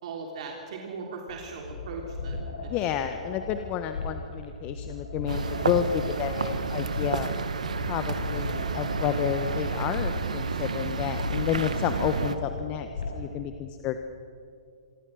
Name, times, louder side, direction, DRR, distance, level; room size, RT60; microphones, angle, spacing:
voice 1, 0.0-3.1, right 4 dB, 60° right, 1 dB, 3.3 m, -39 dB
sound 1, 1.3-13.3, left 3 dB, 85° left, 7.1 m, -37 dB
voice 2, 2.7-7.3 7.9-12.9 13.1-14.0, left 10 dB, 35° left, 8 dB, 1.3 m, -30 dB
sound 2, 5.3-12.4, right 4 dB, 85° right, 1.7 m, -30 dB
26.5 x 22.5 x 6.4 m, 2.3 s
hypercardioid pair, 125°, 4 cm